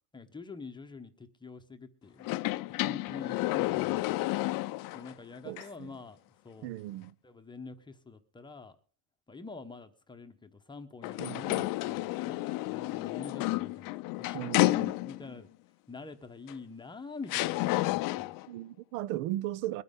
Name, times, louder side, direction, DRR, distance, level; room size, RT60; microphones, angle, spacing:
voice 1, 0.1-2.3 2.8-4.2 4.9-6.2 6.4-6.7 7.2-8.8 9.3-15.5 15.9-18.4, left 4 dB, 10° left, 0.8 m, -46 dB
sound 1, 2.2-5.1 5.6-5.7 11.0-15.4 16.5-16.6 17.3-18.5, left 19 dB, 55° left, 0.5 m, -31 dB
voice 2, 5.4-6.0 6.6-7.1 11.2-11.7 14.3-15.0 18.5-19.8, right 15 dB, 75° right, 0.7 m, -37 dB
22.0 x 9.5 x 3.7 m
cardioid pair, 160°, 41 cm